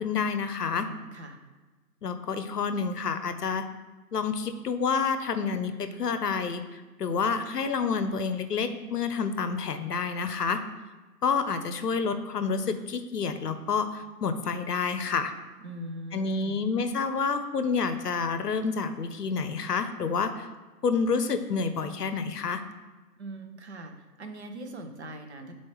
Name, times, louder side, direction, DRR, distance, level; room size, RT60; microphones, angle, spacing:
voice 1, 0.0-0.9 2.0-3.7 4.1-10.6 11.2-15.3 16.1-20.5 20.8-22.6, left 5 dB, 70° left, 9 dB, 0.7 m, -29 dB
voice 2, 0.9-1.4 15.6-16.6 23.2-25.6, right 1 dB, 45° right, 5 dB, 0.7 m, -41 dB
7.3 x 4.3 x 3.0 m, 1.3 s
figure-of-eight pair, 140°, 49 cm